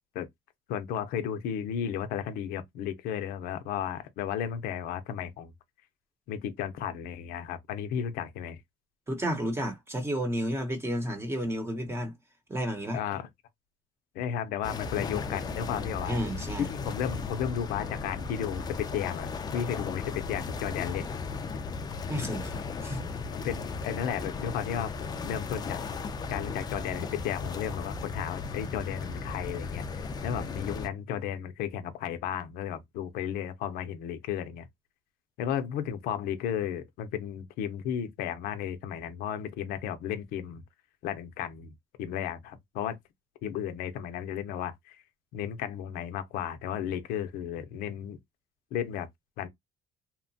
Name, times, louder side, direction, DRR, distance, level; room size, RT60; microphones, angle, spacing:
voice 1, 0.7-5.5 6.3-8.6 12.9-13.3 14.1-16.2 16.6-21.1 23.3-25.8 26.3-29.8 30.2-34.7 35.4-40.6 41.0-43.0 43.4-45.0 45.3-48.2 48.7-49.1 49.4-49.5, left 9 dB, 90° left, 0.6 m, -34 dB
voice 2, 9.1-12.1 12.5-13.0 16.1-16.7 22.1-23.1, equal, 15° right, 0.8 m, -32 dB
sound 1, 14.6-30.9, left 4 dB, 30° left, 0.4 m, -36 dB
2.9 x 2.1 x 2.7 m
cardioid pair, 125°, 15 cm